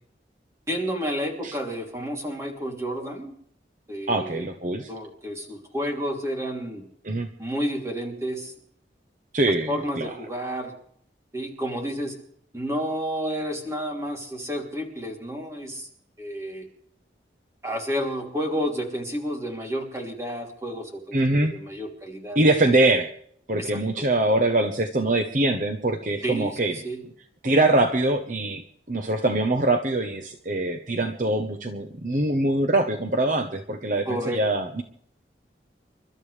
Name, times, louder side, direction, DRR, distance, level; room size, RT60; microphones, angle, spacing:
voice 1, 0.7-3.3 3.9-4.5 4.9-6.8 7.4-8.5 9.7-10.7 11.3-12.1 12.5-15.9 16.2-16.6 17.6-22.4 23.6-24.0 26.2-27.0 34.1-34.4, equal, 15° right, 1 dB, 3.0 m, -30 dB
voice 2, 4.1-4.9 7.0-7.3 9.3-10.1 21.1-21.6 22.3-23.1 23.5-26.8 27.4-34.8, right 2 dB, 45° right, 4 dB, 1.0 m, -23 dB
29.0 x 13.0 x 3.4 m, 0.64 s
head